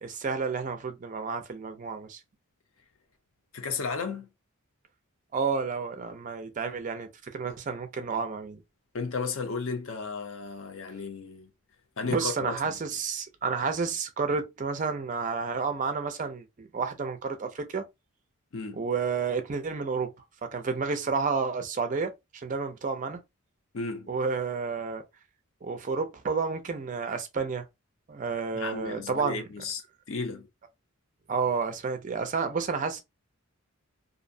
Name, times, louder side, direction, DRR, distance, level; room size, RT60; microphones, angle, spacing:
voice 1, 0.0-2.2 5.3-8.6 12.0-17.8 18.7-20.1 20.4-23.2 24.1-25.0 25.6-27.6 28.1-29.5 31.3-33.0, right 5 dB, 35° right, 0.3 m, -30 dB
voice 2, 3.5-4.3 8.9-11.5 12.0-12.8 18.5-18.8 23.7-24.1 28.5-30.5, left 4 dB, 65° left, 0.6 m, -34 dB
2.6 x 2.0 x 2.5 m
head